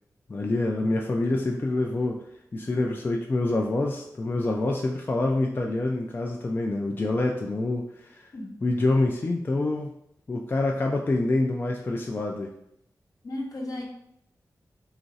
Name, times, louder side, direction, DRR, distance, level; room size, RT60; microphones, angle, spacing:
voice 1, 0.3-2.2 2.5-8.3 8.6-9.9 10.3-12.5, left 2 dB, 30° left, 1 dB, 0.3 m, -26 dB
voice 2, 8.3-8.7 13.2-13.8, left 1 dB, 65° left, 0 dB, 0.8 m, -35 dB
3.0 x 2.4 x 4.0 m, 0.75 s
wide cardioid pair, 95°, 7 cm